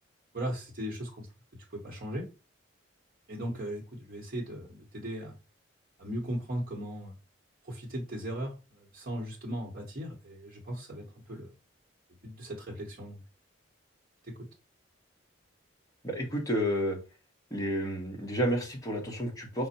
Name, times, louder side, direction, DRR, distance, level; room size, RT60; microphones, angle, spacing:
voice 1, 0.3-1.3 1.7-2.3 3.3-5.3 6.0-7.1 7.6-11.5 12.2-13.2 14.2-14.5, equal, 45° right, 0.9 m, -37 dB
voice 2, 16.0-17.0 17.5-19.7, equal, 15° left, 1.0 m, -30 dB
5.0 x 2.1 x 4.1 m
head